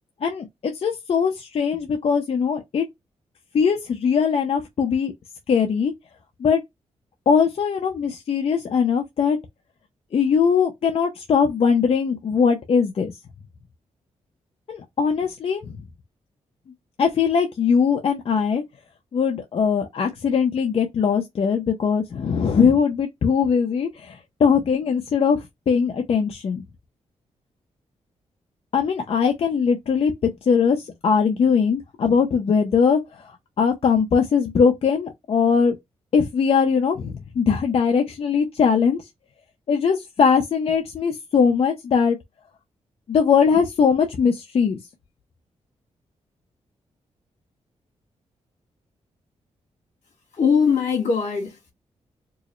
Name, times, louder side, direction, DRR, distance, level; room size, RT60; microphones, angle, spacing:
voice 1, 0.2-2.8 3.5-5.1 5.5-5.9 6.4-6.6 7.3-9.4 10.1-13.1 14.7-15.6 17.0-18.6 19.1-24.1 24.4-25.4 25.7-26.6 28.7-33.0 33.6-35.8 36.1-39.0 39.7-42.2 43.1-44.8, left 6 dB, 55° left, 0.7 m, -20 dB
voice 2, 50.3-51.7, left 6 dB, 85° left, 2.1 m, -21 dB
4.6 x 2.0 x 3.1 m
wide cardioid pair, 120°, 12 cm